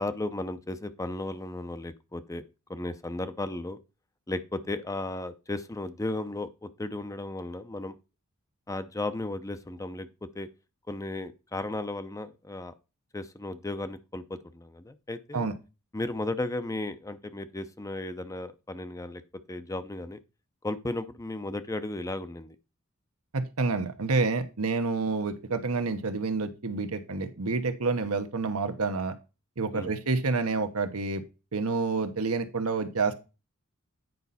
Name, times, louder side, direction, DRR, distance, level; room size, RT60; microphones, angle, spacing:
voice 1, 0.0-2.4 2.7-3.8 4.3-7.9 8.7-10.1 10.3-10.5 10.9-12.7 13.1-15.5 15.9-19.2 19.5-20.2 20.6-22.6 29.7-29.9, left 2 dB, 15° left, 0.6 m, -35 dB
voice 2, 23.3-29.1 29.6-31.2 31.5-33.1, right 3 dB, 80° right, 1.1 m, -28 dB
9.3 x 5.3 x 4.1 m
head